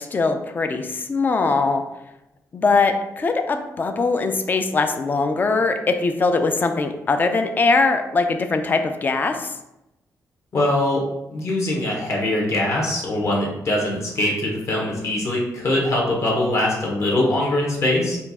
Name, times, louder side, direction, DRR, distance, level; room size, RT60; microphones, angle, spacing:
voice 1, 0.0-1.8 2.5-9.5, left 3 dB, 30° left, 7 dB, 0.4 m, -21 dB
voice 2, 10.5-11.0 11.3-18.2, left 1 dB, 50° left, -2 dB, 1.1 m, -22 dB
4.3 x 2.4 x 4.1 m, 0.91 s
wide cardioid pair, 170°, 6 cm